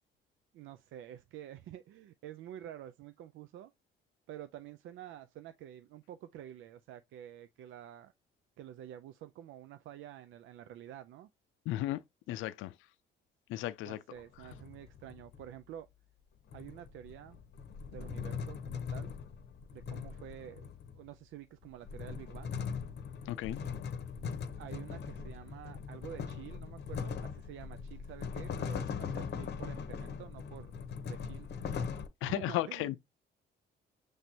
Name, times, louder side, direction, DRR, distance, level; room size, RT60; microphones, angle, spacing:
voice 1, 0.5-3.7 4.3-8.1 8.6-11.3 13.9-15.9 16.5-17.4 17.9-19.1 19.7-22.5 24.6-30.7 31.0-31.5 32.2-32.9, right 11 dB, 80° right, 0.4 m, -49 dB
voice 2, 11.7-12.0 12.3-12.7 13.5-14.0 23.3-23.6 32.2-33.0, left 15 dB, 85° left, 0.4 m, -34 dB
sound 1, 14.2-15.5 16.5-21.1 21.6-32.1, left 6 dB, 60° left, 0.8 m, -40 dB
5.9 x 3.2 x 2.7 m
cardioid pair, 90°, 20 cm